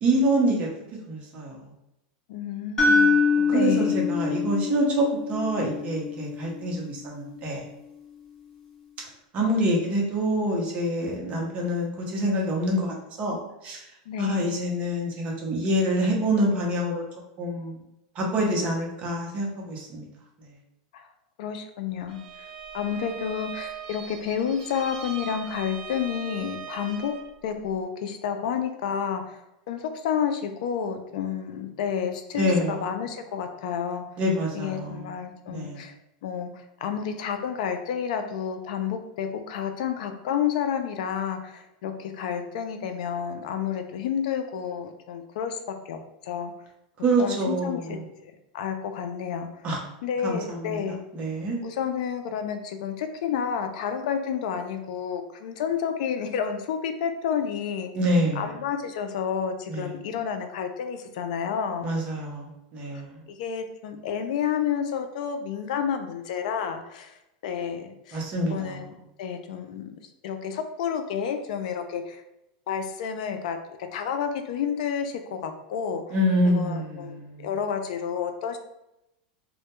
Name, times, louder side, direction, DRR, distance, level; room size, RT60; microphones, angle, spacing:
voice 1, 0.0-0.7 1.1-1.6 3.5-7.6 9.3-13.8 14.2-17.0 17.4-17.8 18.2-20.0 32.4-32.8 34.2-35.1 35.5-35.8 47.0-48.0 49.6-49.8 50.2-51.6 57.9-58.4 59.7-59.9 61.8-63.2 68.1-68.8 76.1-77.5, right 1 dB, 30° right, -1 dB, 0.6 m, -26 dB
voice 2, 2.3-4.0 14.1-14.5 20.9-21.1 21.4-22.5 22.7-27.1 27.4-29.4 29.7-34.0 34.5-35.9 36.2-45.6 45.9-46.5 47.2-48.0 48.5-49.5 50.0-51.0 51.6-57.9 58.4-61.9 63.3-67.1 67.4-68.2 68.5-68.8 69.2-69.9 70.2-72.2 72.7-73.6 73.9-76.0 76.5-78.6, left 7 dB, 70° left, 7 dB, 0.3 m, -30 dB
sound 1, 2.8-6.8, left 4 dB, 15° left, 0.5 m, -24 dB
Bowed string instrument, 22.1-27.3, right 8 dB, 85° right, 0.4 m, -40 dB
2.1 x 2.1 x 2.9 m, 0.87 s
supercardioid pair, 150°, 4 cm